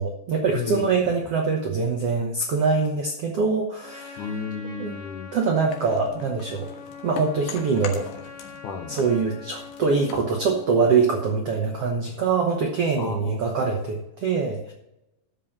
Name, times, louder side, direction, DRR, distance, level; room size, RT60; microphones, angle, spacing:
voice 1, 0.0-4.2 4.8-4.9 5.3-6.7 7.0-8.1 8.9-14.7, right 4 dB, 70° right, 1 dB, 1.4 m, -24 dB
voice 2, 0.5-1.0 4.2-5.3 8.6-9.0 13.0-13.5, left 5 dB, 70° left, 4 dB, 2.0 m, -32 dB
Trumpet, 3.8-11.4, left 5 dB, 45° left, 2.2 m, -43 dB
sound 1, 5.7-8.6 8.9-11.3, left 5 dB, 90° left, 3.4 m, -41 dB
13.0 x 5.2 x 7.3 m, 0.87 s
omnidirectional pair, 4.5 m